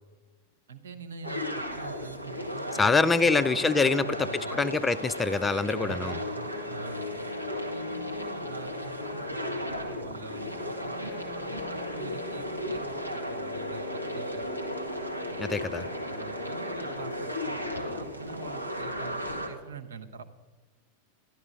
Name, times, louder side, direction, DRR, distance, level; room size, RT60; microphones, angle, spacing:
voice 1, 0.7-4.7 5.8-7.3 7.7-14.6 15.4-20.2, right 6 dB, 65° right, 7 dB, 1.0 m, -45 dB
sound 1, 1.2-19.5, left 1 dB, 90° right, 1.6 m, -35 dB
voice 2, 2.8-6.2 15.4-15.8, left 4 dB, 15° left, 11 dB, 0.4 m, -25 dB
13.5 x 12.0 x 5.2 m, 1.2 s
figure-of-eight pair, 90°, 0 cm